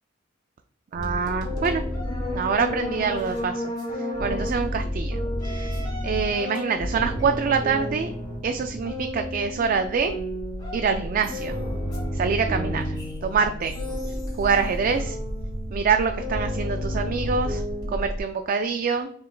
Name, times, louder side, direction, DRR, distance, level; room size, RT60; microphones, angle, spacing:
sound 1, 0.9-18.2, equal, 20° left, 1.9 m, -30 dB
voice 1, 0.9-1.8 2.3-5.2 5.4-8.1 8.4-10.2 10.7-11.6 12.1-13.8 14.0-15.2 15.7-17.6 17.9-19.1, right 5 dB, 45° right, 6 dB, 0.3 m, -25 dB
6.6 x 3.3 x 2.3 m, 0.65 s
head